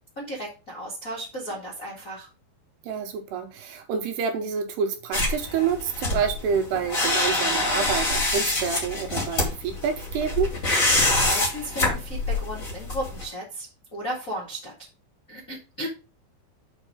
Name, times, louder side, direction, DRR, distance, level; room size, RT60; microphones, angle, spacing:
voice 1, 0.1-2.3 11.0-14.7 15.3-15.9, right 1 dB, 55° left, 0.9 m, -35 dB
voice 2, 2.9-10.5, right 7 dB, 75° right, 2.8 m, -28 dB
sound 1, 5.1-13.2, left 2 dB, 30° left, 1.7 m, -25 dB
6.3 x 5.3 x 4.9 m
omnidirectional pair, 5.2 m